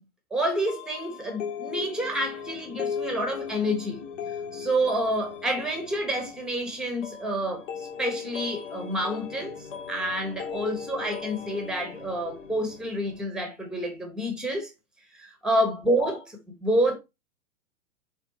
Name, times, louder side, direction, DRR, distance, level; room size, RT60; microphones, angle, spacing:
voice 1, 0.3-4.0 4.5-14.7 15.1-16.9, right 1 dB, ahead, 1.0 m, -28 dB
sound 1, 0.7-13.3, left 7 dB, 60° left, 1.2 m, -38 dB
4.4 x 3.7 x 2.8 m
figure-of-eight pair, 110°, 43 cm